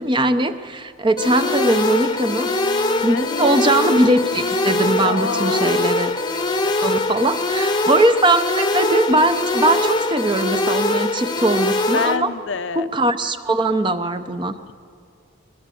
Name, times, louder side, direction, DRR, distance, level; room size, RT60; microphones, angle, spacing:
voice 1, 0.0-2.5 3.0-6.2 6.6-12.3 12.7-14.5, right 2 dB, 25° right, 10 dB, 0.7 m, -20 dB
Brass instrument, 1.1-5.5, left 1 dB, 55° right, 1.9 m, -37 dB
sound 1, 1.2-12.2, left 2 dB, 20° left, 0.9 m, -22 dB
voice 2, 3.0-4.0 5.0-6.0 11.9-12.9, left 5 dB, 70° left, 11 dB, 0.7 m, -27 dB
23.0 x 20.5 x 7.7 m, 2.3 s
head